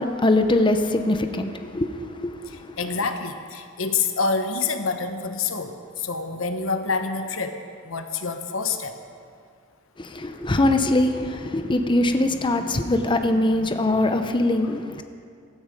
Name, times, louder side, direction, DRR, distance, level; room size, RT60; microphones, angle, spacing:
voice 1, 0.0-1.9 2.2-2.7 10.0-15.0, left 2 dB, 25° left, 7 dB, 0.7 m, -22 dB
voice 2, 2.5-9.0, left 4 dB, 80° left, 7 dB, 1.1 m, -27 dB
16.5 x 13.5 x 5.2 m, 2.3 s
head